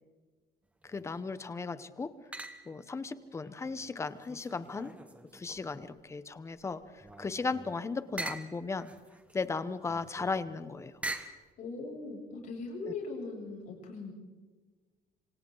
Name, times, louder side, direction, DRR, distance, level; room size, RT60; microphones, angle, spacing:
voice 1, 0.8-2.1 2.7-4.9 5.3-8.9 9.3-10.9, left 4 dB, 15° left, 13 dB, 0.9 m, -36 dB
sound 1, 0.8-1.4 2.3-2.9 3.4-6.1 6.5-11.5, right 2 dB, 10° right, 1.3 m, -45 dB
voice 2, 11.6-14.1, left 3 dB, 55° left, -1 dB, 7.5 m, -40 dB
27.0 x 26.0 x 4.0 m, 1.3 s
cardioid pair, 170°, 16 cm